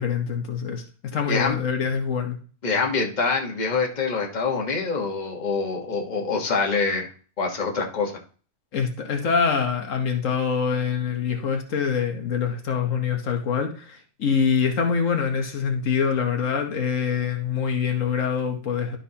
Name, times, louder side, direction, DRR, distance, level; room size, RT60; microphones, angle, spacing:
voice 1, 0.0-2.4 8.7-19.0, left 6 dB, 80° left, 4 dB, 1.4 m, -25 dB
voice 2, 2.6-7.1 7.4-8.1, left 4 dB, 35° left, 0 dB, 1.5 m, -25 dB
12.0 x 5.9 x 2.9 m, 0.40 s
omnidirectional pair, 1.3 m